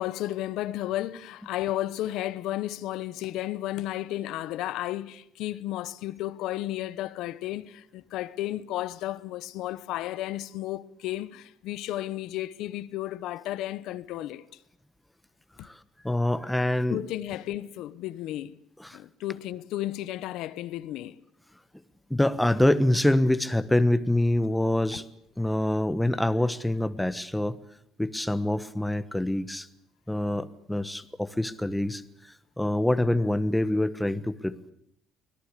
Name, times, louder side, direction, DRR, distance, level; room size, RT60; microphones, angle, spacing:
voice 1, 0.0-14.4 15.6-15.7 16.9-18.6 18.9-21.2, left 14 dB, 80° left, 1.0 m, -33 dB
voice 2, 16.0-17.0 18.8-19.0 22.1-25.0 25.4-27.6 28.0-29.7 30.1-32.0 32.6-34.7, left 1 dB, 5° left, 1.2 m, -25 dB
24.5 x 18.0 x 8.4 m
cardioid pair, 120°, 0 cm